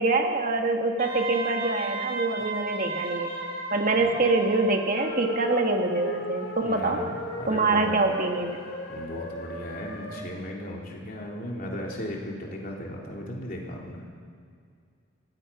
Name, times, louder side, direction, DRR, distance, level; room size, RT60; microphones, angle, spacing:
voice 1, 0.0-3.3 3.7-7.0 7.5-8.6, right 3 dB, 40° right, 3 dB, 1.6 m, -25 dB
Wind instrument woodwind instrument, 1.0-5.2, right 3 dB, 60° right, 5.2 m, -34 dB
sound 1, 5.0-10.2, left 1 dB, 75° left, 4.2 m, -36 dB
voice 2, 6.6-8.0 8.9-14.0, left 1 dB, 40° left, -2 dB, 3.7 m, -36 dB
25.0 x 19.5 x 5.9 m, 2.2 s
head